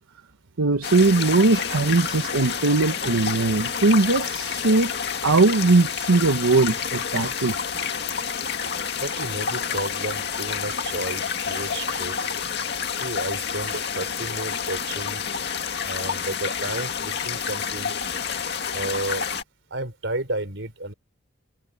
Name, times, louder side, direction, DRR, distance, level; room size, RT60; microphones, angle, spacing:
voice 1, 0.6-4.9 5.2-7.5, right 3 dB, 90° right, 1.0 m, -20 dB
sound 1, 0.8-19.4, left 6 dB, 50° left, 2.1 m, -29 dB
voice 2, 9.0-12.3 13.0-15.2 15.8-18.0 18.7-19.2 19.7-20.9, right 2 dB, 60° right, 4.3 m, -32 dB
head